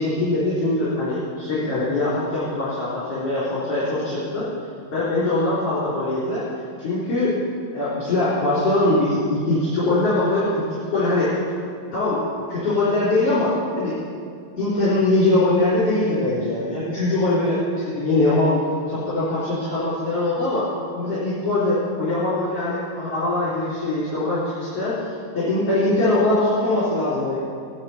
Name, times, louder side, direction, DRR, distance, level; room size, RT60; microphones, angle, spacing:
voice 1, 0.0-4.5 4.9-6.5 6.8-7.4 7.7-10.6 10.9-11.3 11.9-12.2 12.5-13.9 14.6-18.6 18.9-27.4, left 2 dB, 45° left, -11 dB, 4.2 m, -22 dB
17.0 x 11.0 x 4.3 m, 2.3 s
omnidirectional pair, 4.1 m